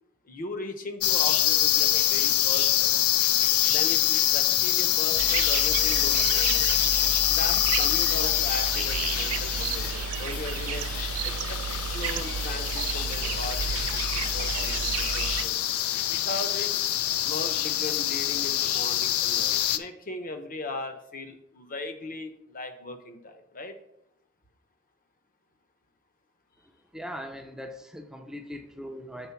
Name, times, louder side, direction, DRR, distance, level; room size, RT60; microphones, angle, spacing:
voice 1, 0.3-2.9 3.6-6.8 7.3-10.8 11.2-15.6 16.1-16.7 17.2-23.8, left 2 dB, 40° left, 7 dB, 0.8 m, -38 dB
sound 1, 1.0-19.8, left 12 dB, 85° left, 0.4 m, -25 dB
sound 2, 5.2-15.4, right 8 dB, 80° right, 0.4 m, -32 dB
voice 2, 26.9-29.3, equal, 5° right, 4 dB, 0.5 m, -40 dB
7.1 x 3.8 x 5.8 m, 0.80 s
head